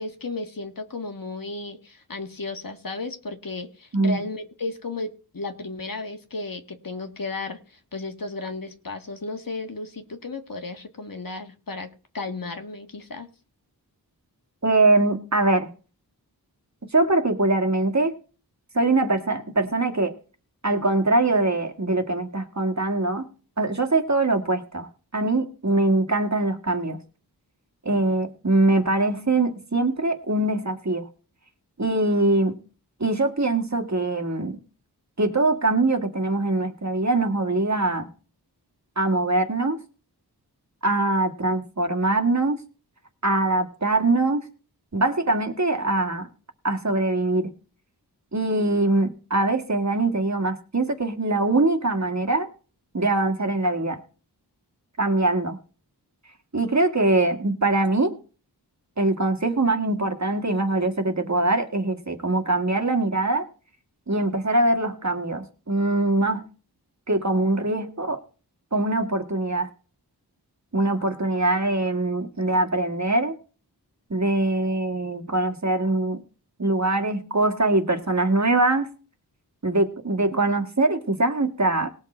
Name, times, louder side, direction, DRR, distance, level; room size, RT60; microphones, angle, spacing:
voice 1, 0.0-13.3, left 3 dB, 55° left, 6 dB, 1.6 m, -34 dB
voice 2, 14.6-15.7 16.8-18.1 18.7-20.1 20.6-23.3 23.6-27.0 27.9-31.1 31.8-32.6 33.0-34.6 35.2-38.1 39.0-39.8 40.8-42.6 43.2-44.5 44.9-46.3 46.6-47.5 48.3-52.5 52.9-54.0 55.0-55.6 56.5-58.2 59.0-63.5 64.1-66.4 67.1-68.2 68.7-69.7 70.7-73.3 74.1-76.2 76.6-78.9 79.6-81.9, right 2 dB, 45° right, 5 dB, 1.8 m, -23 dB
19.0 x 6.5 x 4.4 m, 0.37 s
wide cardioid pair, 55°, 40 cm